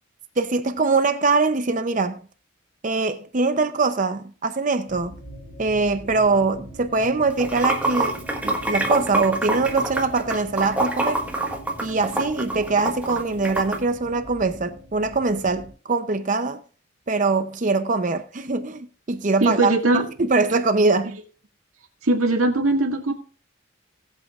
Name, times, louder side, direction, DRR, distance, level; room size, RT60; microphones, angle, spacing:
voice 1, 0.4-2.2 2.8-5.1 5.6-11.2 11.8-16.6 17.1-19.7 20.2-21.2, right 3 dB, 35° right, 0.6 m, -23 dB
sound 1, 4.9-15.7, right 1 dB, 40° left, 4.4 m, -42 dB
Water / Sink (filling or washing), 7.3-13.8, right 2 dB, 5° right, 1.4 m, -25 dB
voice 2, 19.4-20.1 22.0-23.1, right 2 dB, 85° right, 2.0 m, -20 dB
19.0 x 8.2 x 2.4 m
head